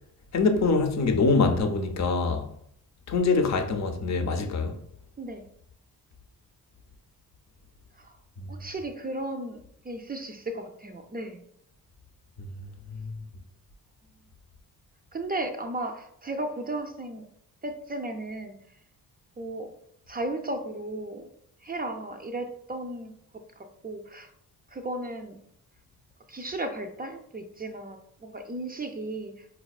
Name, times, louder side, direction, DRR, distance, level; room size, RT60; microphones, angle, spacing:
voice 1, 0.3-2.5 3.1-4.8 8.4-8.5 12.4-13.2, left 4 dB, 45° left, 0.6 m, -25 dB
voice 2, 8.5-11.4 15.1-17.2 17.6-18.8 19.4-19.7 20.1-21.3 21.6-23.1 23.6-24.3 24.7-25.4 26.3-29.6, right 2 dB, 25° right, 0.4 m, -35 dB
4.2 x 2.2 x 2.3 m
cardioid pair, 75°, 38 cm